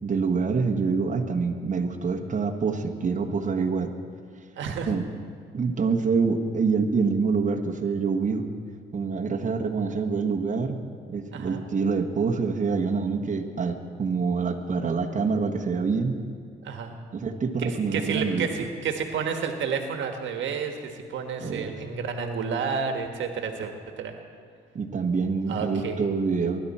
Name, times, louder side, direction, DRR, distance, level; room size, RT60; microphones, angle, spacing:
voice 1, 0.0-3.9 4.9-5.0 5.5-8.5 8.9-10.8 11.1-16.2 17.1-18.5 21.4-21.7 24.7-26.6, right 5 dB, 40° right, 1 dB, 1.4 m, -26 dB
voice 2, 4.6-4.9 11.3-11.6 16.6-17.0 17.6-24.1 25.5-26.0, right 6 dB, 70° right, 4 dB, 1.5 m, -30 dB
24.0 x 11.5 x 4.3 m, 2.3 s
cardioid pair, 90°, 20 cm